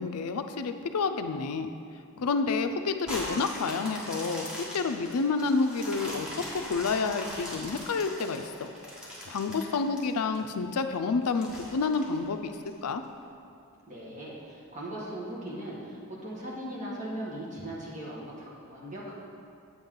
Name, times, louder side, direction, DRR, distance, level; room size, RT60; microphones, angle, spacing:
voice 1, 0.0-1.7 2.2-6.3 6.7-8.7 9.3-12.5 12.8-13.0, left 4 dB, 85° left, 8 dB, 0.5 m, -29 dB
sound 1, 3.1-10.4 10.8-10.9 11.4-12.7 13.2-13.3, left 1 dB, 5° right, 1.4 m, -40 dB
voice 2, 13.9-19.1, right 1 dB, 35° right, -5 dB, 1.6 m, -39 dB
8.4 x 7.1 x 3.8 m, 2.4 s
head